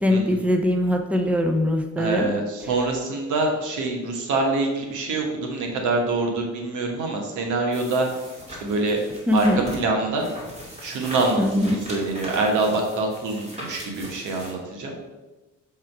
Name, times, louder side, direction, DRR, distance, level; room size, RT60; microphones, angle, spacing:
voice 1, 0.0-2.3 9.3-9.7 11.4-11.8, left 1 dB, 5° right, 5 dB, 0.7 m, -22 dB
voice 2, 2.0-8.1 8.5-9.0 9.3-10.3 10.8-14.9, right 2 dB, 85° right, 2 dB, 1.3 m, -25 dB
sound 1, 7.7-14.5, equal, 20° right, 2.3 m, -39 dB
7.0 x 3.7 x 4.6 m, 1.1 s
cardioid pair, 90°, 30 cm